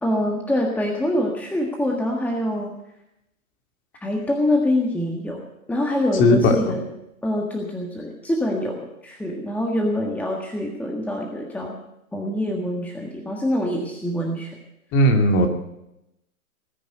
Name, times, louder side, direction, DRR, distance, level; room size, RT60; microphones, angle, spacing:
voice 1, 0.0-2.7 4.0-6.9 7.2-11.7 12.1-14.5, left 1 dB, 5° left, 1 dB, 1.5 m, -25 dB
voice 2, 6.2-6.7 14.9-15.5, left 1 dB, 25° left, 3 dB, 2.6 m, -17 dB
19.0 x 10.0 x 6.7 m, 0.84 s
hypercardioid pair, 120°, 43 cm